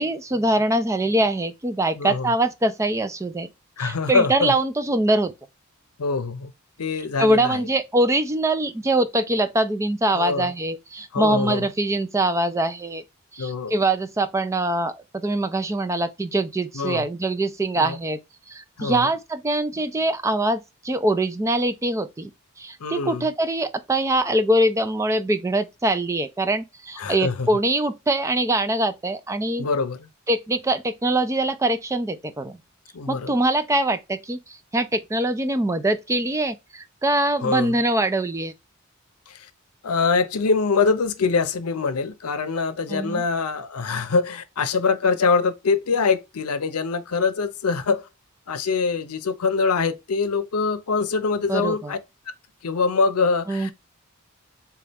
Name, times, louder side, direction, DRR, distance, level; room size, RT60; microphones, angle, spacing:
voice 1, 0.0-3.5 3.8-5.3 7.2-13.0 13.3-18.2 18.5-22.3 22.6-29.7 30.3-32.6 33.1-34.4 34.7-38.5 42.9-43.2 51.5-51.9 53.5-53.7, right 1 dB, 15° right, 0.4 m, -23 dB
voice 2, 2.0-2.3 3.8-4.5 6.0-6.5 6.8-7.6 10.1-10.5 11.1-11.7 13.4-13.7 16.7-17.0 17.8-18.0 18.8-19.1 22.8-23.3 27.0-27.5 29.6-30.1 32.9-33.4 37.4-37.7 39.3-39.5 39.8-48.1 48.5-52.0 52.6-53.7, left 4 dB, 90° left, 0.6 m, -24 dB
4.0 x 2.3 x 3.4 m
head